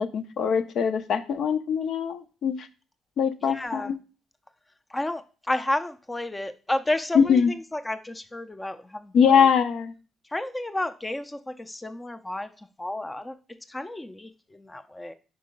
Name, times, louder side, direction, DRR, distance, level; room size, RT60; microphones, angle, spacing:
voice 1, 0.0-2.7 3.2-4.0 7.1-7.5 9.1-9.9, left 7 dB, 70° left, 9 dB, 0.6 m, -22 dB
voice 2, 3.4-3.9 4.9-9.5 10.3-12.5 12.8-13.3 13.7-15.1, left 1 dB, 15° left, 10 dB, 0.5 m, -31 dB
4.7 x 4.7 x 5.2 m, 0.35 s
cardioid pair, 90°, 0 cm